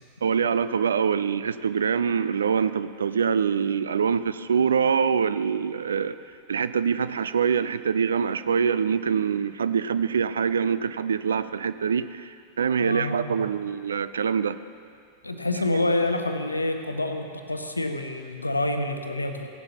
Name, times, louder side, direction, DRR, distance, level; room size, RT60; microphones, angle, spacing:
voice 1, 0.2-6.2 6.5-14.6, right 6 dB, 70° right, 13 dB, 0.4 m, -24 dB
voice 2, 12.8-13.4 15.2-19.5, left 2 dB, 85° left, 6 dB, 0.8 m, -27 dB
16.0 x 11.0 x 2.9 m, 2.2 s
figure-of-eight pair, 90°, 0 cm